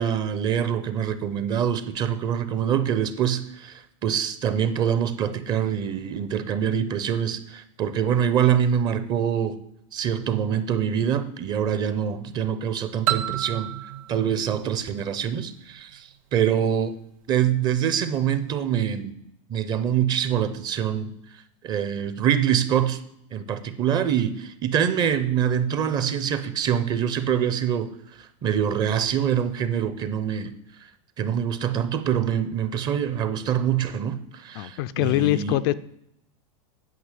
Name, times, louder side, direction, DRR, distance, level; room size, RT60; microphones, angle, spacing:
voice 1, 0.0-9.6 9.9-13.7 14.1-16.9 17.3-19.2 19.5-21.1 21.6-23.0 23.3-27.9 28.2-30.5 31.2-35.6, right 9 dB, 25° right, 12 dB, 0.7 m, -25 dB
sound 1, 13.1-15.8, right 12 dB, 80° right, 0.7 m, -30 dB
voice 2, 34.5-35.7, left 15 dB, 45° left, 13 dB, 0.4 m, -23 dB
9.4 x 5.5 x 8.2 m, 0.75 s
supercardioid pair, 160°, 17 cm